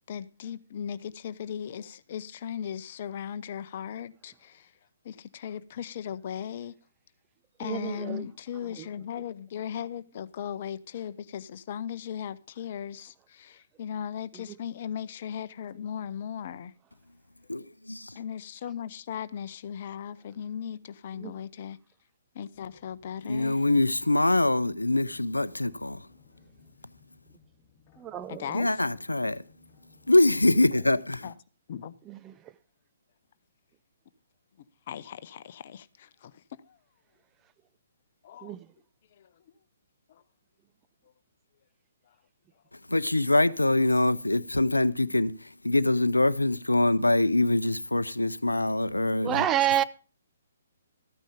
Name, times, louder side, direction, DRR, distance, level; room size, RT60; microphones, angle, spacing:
voice 1, 0.1-4.7 5.0-6.7 7.6-16.7 18.1-21.8 22.3-23.6 28.3-28.7 31.2-31.3 31.7-32.0 34.9-36.8 38.2-38.5 39.2-39.3 40.1-40.2, left 8 dB, 45° left, 0.8 m, -37 dB
voice 2, 7.6-8.3 8.8-8.9 14.3-14.6 21.2-21.3 28.0-28.6 32.1-32.5 38.4-38.7 49.2-49.8, right 11 dB, 20° right, 0.6 m, -29 dB
voice 3, 17.5-18.2 23.2-26.1 28.5-29.4 30.1-31.3 42.9-49.4, left 2 dB, 90° left, 0.6 m, -24 dB
sound 1, 22.5-31.0, left 5 dB, 25° left, 2.8 m, -61 dB
13.5 x 9.2 x 5.1 m
figure-of-eight pair, 130°, 0 cm